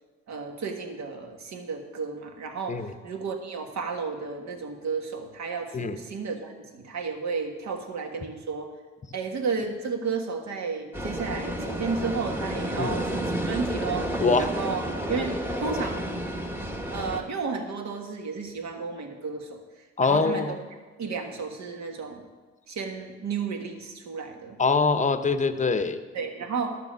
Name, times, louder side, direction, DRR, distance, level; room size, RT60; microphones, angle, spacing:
voice 1, 0.3-8.7 9.1-14.1 14.4-14.8 15.1-16.1 16.9-19.6 20.0-20.6 21.0-22.2 22.7-24.6 26.1-26.8, right 5 dB, 65° right, 4 dB, 1.6 m, -32 dB
sound 1, 10.9-17.2, right 1 dB, 5° right, 1.1 m, -31 dB
voice 2, 14.2-14.5 20.0-20.6 24.6-26.0, left 4 dB, 25° left, 10 dB, 0.7 m, -24 dB
11.5 x 6.8 x 6.1 m, 1.3 s
cardioid pair, 90°, 30 cm